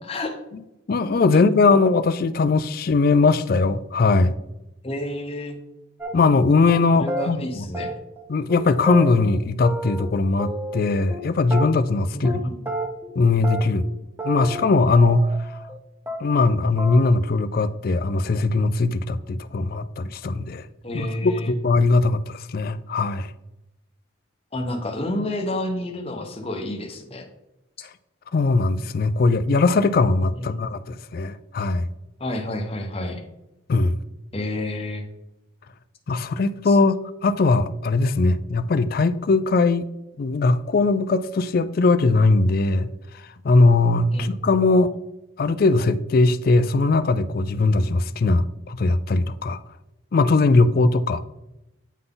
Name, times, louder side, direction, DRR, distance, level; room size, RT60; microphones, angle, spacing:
voice 1, 0.1-0.4 1.3-1.4 4.8-5.6 6.9-8.0 12.1-12.7 20.8-21.5 24.5-27.3 30.3-30.6 32.2-33.2 34.3-35.0 36.6-36.8 44.1-44.5, left 1 dB, 30° left, 3 dB, 0.9 m, -29 dB
voice 2, 0.9-4.4 6.1-7.6 8.3-12.4 13.2-13.8 14.2-15.5 16.2-20.6 20.9-23.3 28.3-31.9 33.7-33.9 36.1-39.9 40.2-42.9 43.4-44.9 45.4-49.6 50.1-51.3, left 3 dB, 45° left, 12 dB, 0.3 m, -20 dB
sound 1, 6.0-6.4 6.7-6.8 7.1-7.3 7.7-8.2 8.5-8.6 8.9-10.1 10.4-11.2 11.5-12.0 12.2-12.4 12.7-13.1 13.4-15.8 16.1-16.5 16.8-17.0, right 1 dB, 10° right, 0.6 m, -31 dB
9.2 x 3.9 x 3.8 m, 0.92 s
head